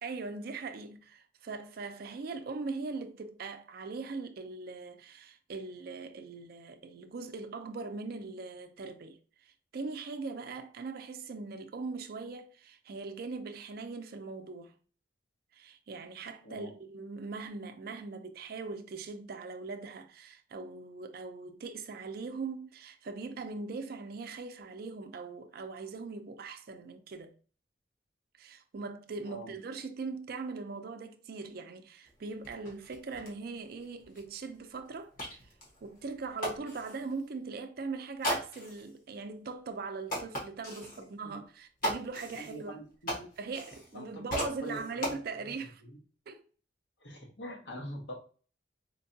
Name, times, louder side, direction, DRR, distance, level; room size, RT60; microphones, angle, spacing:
voice 1, 0.0-14.7 15.5-27.3 28.4-35.1 35.8-42.8 43.4-45.8 46.3-46.4, right 4 dB, 60° right, 0.4 m, -41 dB
voice 2, 16.4-16.7 29.2-29.5 42.4-43.2 43.9-45.5 45.8-46.0 47.0-48.1, equal, 80° left, 1.1 m, -44 dB
sound 1, 32.0-32.1 32.4-37.1 38.2-38.9 39.4-39.5 40.1-41.0 41.8-44.0 44.3-45.2, equal, 50° left, 1.2 m, -38 dB
4.4 x 2.2 x 2.7 m
head